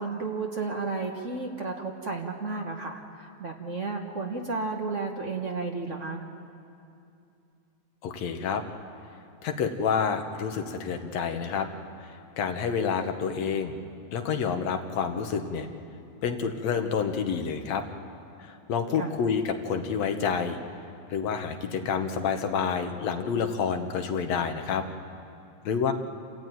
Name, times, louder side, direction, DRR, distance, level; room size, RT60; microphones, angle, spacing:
voice 1, 0.0-6.2 19.0-19.2, right 3 dB, 50° right, 2 dB, 0.9 m, -33 dB
voice 2, 8.0-8.6 9.4-11.7 12.0-13.7 14.1-15.7 16.2-17.8 18.4-20.6 21.1-24.9 25.6-25.9, left 6 dB, 70° left, 6 dB, 2.3 m, -28 dB
28.5 x 15.0 x 9.3 m, 2.6 s
omnidirectional pair, 3.4 m